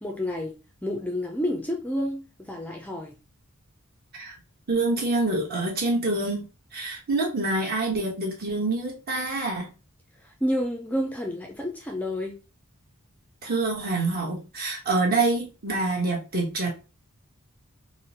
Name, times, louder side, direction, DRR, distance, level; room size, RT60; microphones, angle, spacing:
voice 1, 0.0-3.2 10.2-12.4, left 1 dB, 5° left, 1 dB, 0.3 m, -30 dB
voice 2, 4.7-6.4 6.7-9.7 13.4-16.7, right 2 dB, 45° right, -1 dB, 1.0 m, -26 dB
3.7 x 2.0 x 2.7 m, 0.31 s
head